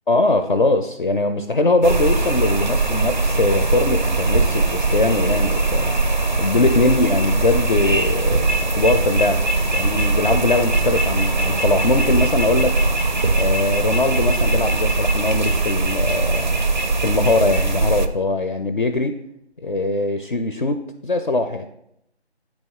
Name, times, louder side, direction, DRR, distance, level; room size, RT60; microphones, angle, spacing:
voice 1, 0.1-5.9 6.4-9.4 9.7-12.8 13.3-16.6 17.0-19.2 19.6-21.6, left 2 dB, 50° left, 7 dB, 0.5 m, -21 dB
sound 1, 1.8-18.1, right 2 dB, 45° right, 0.4 m, -20 dB
8.6 x 3.2 x 4.5 m, 0.76 s
figure-of-eight pair, 160°, 33 cm